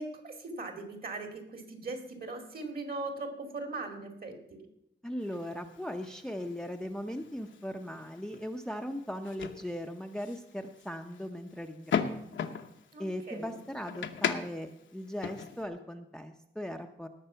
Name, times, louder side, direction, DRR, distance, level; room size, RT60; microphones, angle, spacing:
voice 1, 0.0-4.6 12.9-13.6, right 2 dB, 50° right, 5 dB, 2.4 m, -40 dB
voice 2, 5.0-12.1 12.4-12.5 13.0-17.1, equal, 5° left, 5 dB, 0.6 m, -38 dB
sound 1, 5.2-15.7, left 7 dB, 75° left, 0.9 m, -39 dB
18.0 x 6.7 x 5.6 m, 0.83 s
wide cardioid pair, 115°, 19 cm